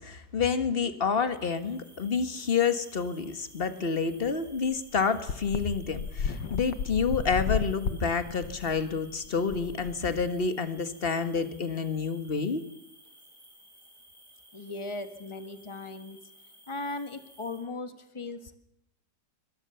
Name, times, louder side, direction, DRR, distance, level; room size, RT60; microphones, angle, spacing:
voice 1, 0.0-12.6, left 5 dB, 35° left, 10 dB, 1.6 m, -29 dB
sound 1, 1.0-17.6, equal, 10° right, 7.6 m, -56 dB
sound 2, 4.3-4.4 4.6-4.7 5.3-10.5, left 6 dB, 90° left, 1.9 m, -33 dB
voice 2, 14.5-16.2 16.7-18.6, left 2 dB, 15° left, 9 dB, 1.5 m, -38 dB
24.5 x 18.5 x 6.9 m, 0.78 s
omnidirectional pair, 1.9 m